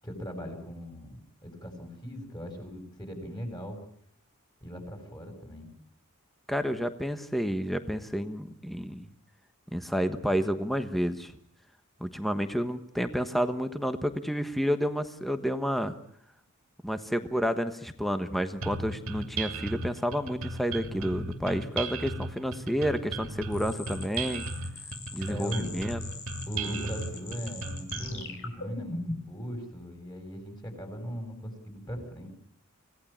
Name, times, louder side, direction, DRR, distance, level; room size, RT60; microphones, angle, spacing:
voice 1, 0.0-3.8 4.6-5.7 25.3-25.7 26.5-32.3, equal, 20° left, 4 dB, 7.0 m, -39 dB
voice 2, 6.5-9.1 9.7-11.3 12.0-15.9 16.8-24.5 25.1-26.0, equal, ahead, 9 dB, 1.3 m, -30 dB
sound 1, 18.6-28.2, right 3 dB, 65° right, 2.7 m, -36 dB
sound 2, 23.5-29.4, left 3 dB, 60° left, 5.9 m, -41 dB
26.0 x 18.0 x 8.8 m, 0.66 s
head